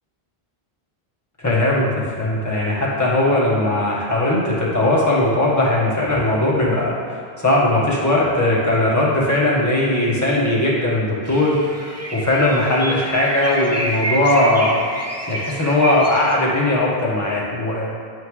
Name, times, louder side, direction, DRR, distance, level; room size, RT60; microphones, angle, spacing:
voice 1, 1.4-1.9 2.2-14.8 15.3-17.9, left 1 dB, 15° left, -7 dB, 1.6 m, -19 dB
sound 1, 11.2-16.4, right 1 dB, 20° right, 0.6 m, -28 dB
10.5 x 5.7 x 3.3 m, 2.3 s
omnidirectional pair, 1.0 m